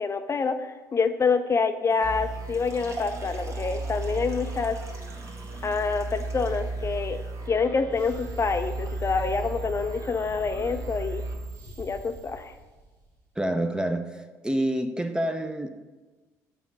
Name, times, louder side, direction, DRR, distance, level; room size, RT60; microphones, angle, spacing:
voice 1, 0.0-4.8 5.6-11.2 11.8-12.6, left 5 dB, 35° left, 0.5 m, -27 dB
sound 1, 1.9-7.5, right 2 dB, 35° right, 1.2 m, -45 dB
sound 2, 2.0-12.3, right 2 dB, 50° right, 1.4 m, -35 dB
sound 3, 7.9-13.3, right 2 dB, 75° right, 2.0 m, -46 dB
voice 2, 13.4-15.7, right 1 dB, 10° right, 0.6 m, -28 dB
5.8 x 4.2 x 6.0 m
hypercardioid pair, 60°, 8 cm